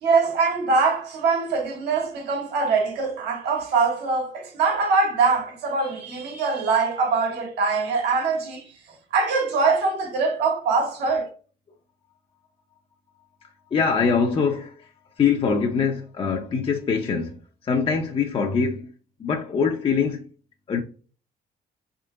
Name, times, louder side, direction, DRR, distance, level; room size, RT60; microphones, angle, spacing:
voice 1, 0.0-8.7 9.1-11.3, right 4 dB, 80° right, 1.8 m, -23 dB
voice 2, 13.4-18.9 19.2-20.3 20.7-20.8, left 5 dB, 30° left, 0.6 m, -24 dB
3.7 x 3.4 x 3.7 m
cardioid pair, 110°, 17 cm